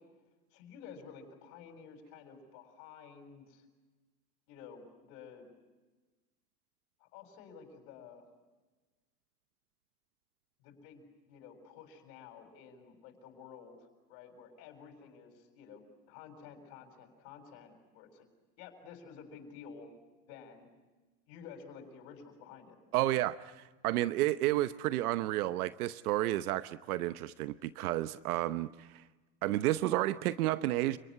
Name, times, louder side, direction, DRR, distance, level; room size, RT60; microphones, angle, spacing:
voice 1, 0.5-3.6 4.5-5.5 7.0-8.2 10.6-15.8 16.1-18.3 18.6-19.9 20.3-20.7 21.3-22.8, left 6 dB, 65° left, 5 dB, 7.3 m, -52 dB
voice 2, 22.9-29.0 29.4-31.0, right 15 dB, 90° right, 14 dB, 1.0 m, -31 dB
30.0 x 19.5 x 9.9 m, 1.2 s
supercardioid pair, 125°, 43 cm